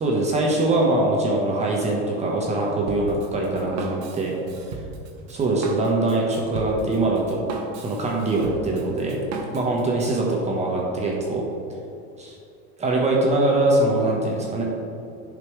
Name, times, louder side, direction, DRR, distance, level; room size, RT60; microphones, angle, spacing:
voice 1, 0.0-4.3 5.3-7.4 7.8-9.2 9.5-11.4 12.2-12.3 12.8-14.6, right 2 dB, 20° right, -2 dB, 1.2 m, -22 dB
Drum kit, 2.9-10.2, right 3 dB, 60° right, 1.1 m, -36 dB
10.5 x 5.3 x 3.3 m, 2.5 s
supercardioid pair, 140°, 30 cm